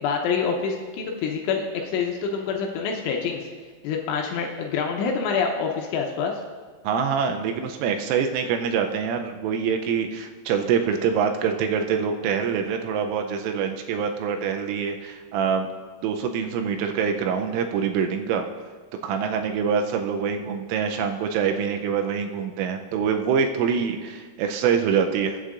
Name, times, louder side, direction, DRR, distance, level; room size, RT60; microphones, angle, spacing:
voice 1, 0.0-3.5 3.8-6.3, left 5 dB, 80° left, 1 dB, 3.0 m, -26 dB
voice 2, 6.8-15.7 16.0-18.5 19.0-25.4, right 7 dB, 85° right, 5 dB, 3.1 m, -25 dB
21.0 x 8.3 x 2.5 m, 1.5 s
omnidirectional pair, 5.9 m